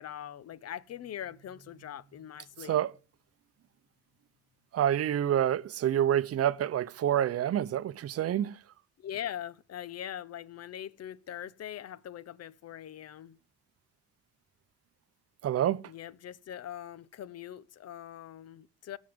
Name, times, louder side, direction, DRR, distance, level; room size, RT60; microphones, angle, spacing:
voice 1, 0.0-2.8 9.0-13.4 15.8-19.0, left 10 dB, 55° left, 0.8 m, -42 dB
voice 2, 4.7-8.6 15.4-15.8, right 10 dB, 50° right, 0.7 m, -27 dB
18.5 x 6.4 x 3.5 m
cardioid pair, 90°, 30 cm